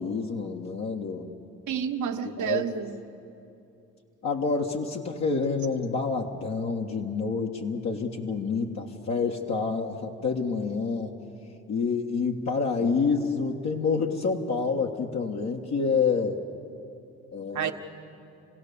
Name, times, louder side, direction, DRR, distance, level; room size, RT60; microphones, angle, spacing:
voice 1, 0.0-1.3 2.2-2.6 4.2-11.1 11.7-16.4 17.3-17.7, left 4 dB, 55° left, -1 dB, 1.7 m, -28 dB
voice 2, 1.7-2.9 17.5-17.7, right 8 dB, 60° right, 5 dB, 1.4 m, -29 dB
27.5 x 16.5 x 6.9 m, 2.7 s
supercardioid pair, 60°, 33 cm